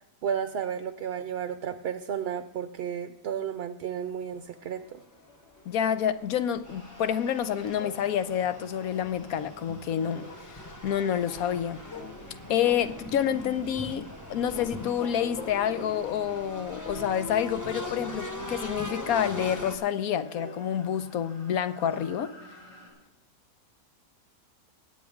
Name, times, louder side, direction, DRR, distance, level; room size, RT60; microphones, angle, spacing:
voice 1, 0.2-5.0, right 8 dB, 60° right, 0.7 m, -33 dB
sound 1, 4.3-6.6 7.8-9.2 10.2-10.7 11.9-12.4 12.6-13.3 14.5-16.3 17.8-18.6 18.9-19.5 20.4-23.0, left 4 dB, 55° left, 1.4 m, -47 dB
sound 2, 5.0-5.1 5.6-19.8, left 1 dB, 15° left, 1.2 m, -41 dB
voice 2, 5.7-11.8 12.5-22.4, left 9 dB, 85° left, 1.2 m, -28 dB
sound 3, 6.6-22.9, equal, 35° left, 5.6 m, -53 dB
22.0 x 8.7 x 3.6 m
omnidirectional pair, 1.5 m